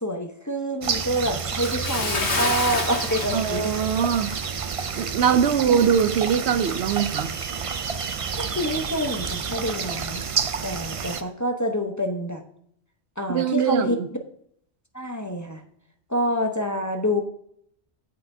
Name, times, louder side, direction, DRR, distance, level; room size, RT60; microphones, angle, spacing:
voice 1, 0.0-3.7 5.6-5.9 8.3-10.2 10.6-12.4 13.2-14.0 14.9-15.6 16.1-17.2, equal, 20° left, 4 dB, 0.8 m, -27 dB
sound 1, 0.8-11.2, right 6 dB, 45° right, 0.5 m, -29 dB
Bathtub (filling or washing) / Splash splatter, 1.6-4.5 4.8-5.0 5.5-5.6, left 3 dB, 85° left, 1.8 m, -29 dB
voice 2, 3.3-4.3 5.0-7.3 13.3-14.1, right 7 dB, 80° right, 11 dB, 0.9 m, -22 dB
16.5 x 5.8 x 2.7 m, 0.66 s
omnidirectional pair, 1.1 m